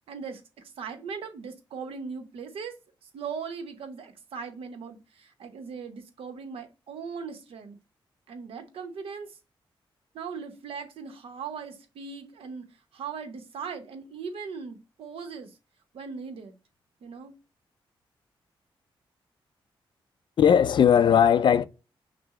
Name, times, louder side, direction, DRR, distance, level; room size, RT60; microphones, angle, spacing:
voice 1, 0.1-2.8 3.1-7.8 8.3-9.4 10.1-12.7 12.9-15.6 15.9-16.6 17.0-17.3, right 5 dB, 85° right, 0.9 m, -39 dB
voice 2, 20.4-21.6, left 8 dB, 55° left, 0.4 m, -18 dB
6.0 x 2.0 x 3.6 m
cardioid pair, 105°, 9 cm